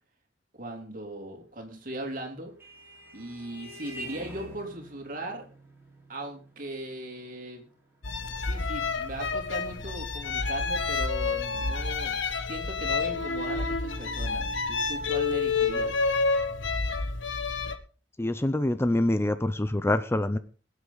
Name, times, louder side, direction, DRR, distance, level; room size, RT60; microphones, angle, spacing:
voice 1, 0.5-2.5 3.1-5.5 6.1-7.7 8.4-16.0, right 1 dB, 50° right, 3 dB, 3.2 m, -38 dB
Vehicle horn car horn honking, 2.3-11.0, equal, 15° right, 4.1 m, -48 dB
sound 1, 8.0-17.7, left 4 dB, 80° left, 1.3 m, -29 dB
voice 2, 18.2-20.4, left 1 dB, 15° left, 12 dB, 0.6 m, -25 dB
21.5 x 8.4 x 3.9 m, 0.36 s
head